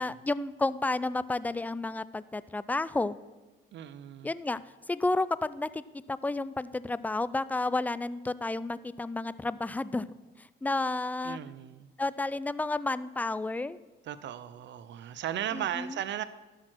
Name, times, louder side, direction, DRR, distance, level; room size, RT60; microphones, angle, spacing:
voice 1, 0.0-3.2 4.2-4.6 4.9-5.8 6.1-10.1 10.4-11.4 12.0-13.8 15.5-16.0, left 2 dB, 10° left, 17 dB, 0.3 m, -31 dB
voice 2, 3.7-4.3 11.2-11.9 14.0-16.2, right 11 dB, 65° right, 14 dB, 0.5 m, -36 dB
12.0 x 6.4 x 6.0 m, 1.2 s
cardioid pair, 90°, 20 cm